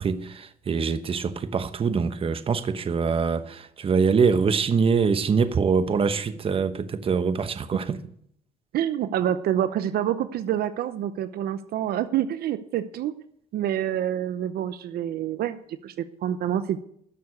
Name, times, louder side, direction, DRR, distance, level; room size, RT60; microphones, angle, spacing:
voice 1, 0.0-8.0, right 5 dB, 35° right, 1.0 m, -24 dB
voice 2, 8.7-13.1 13.5-16.8, right 10 dB, 65° right, 0.8 m, -27 dB
13.0 x 6.9 x 9.6 m
cardioid pair, 110°, 17 cm